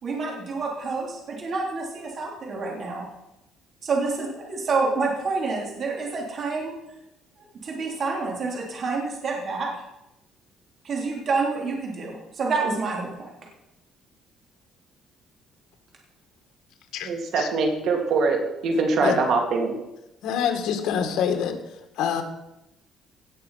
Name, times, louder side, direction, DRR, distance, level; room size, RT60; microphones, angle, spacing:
voice 1, 0.0-3.1 3.8-6.7 7.6-9.7 10.8-13.3, right 4 dB, 45° right, -1 dB, 3.3 m, -28 dB
voice 2, 17.0-19.7, right 4 dB, 65° right, 2 dB, 2.7 m, -23 dB
voice 3, 20.2-21.6 22.0-22.2, left 8 dB, 75° left, 5 dB, 2.0 m, -25 dB
18.0 x 6.7 x 5.8 m, 0.90 s
cardioid pair, 130°, 0 cm